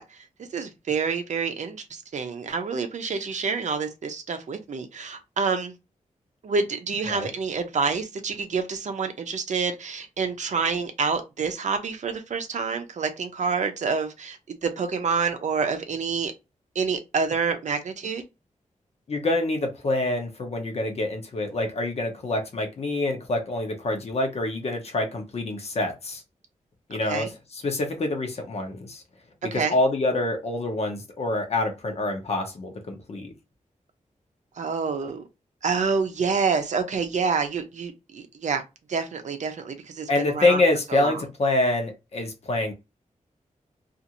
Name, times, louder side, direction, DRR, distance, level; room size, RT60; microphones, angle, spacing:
voice 1, 0.0-5.7 6.4-16.3 16.8-18.2 26.9-27.3 29.5-29.8 34.6-35.2 35.6-38.6 38.9-40.6 40.9-41.2, right 5 dB, 65° right, 0.6 m, -28 dB
voice 2, 19.1-26.2 26.9-29.0 29.4-33.3 40.1-42.7, left 2 dB, 50° left, 0.8 m, -26 dB
2.5 x 2.5 x 2.8 m
wide cardioid pair, 145°, 13 cm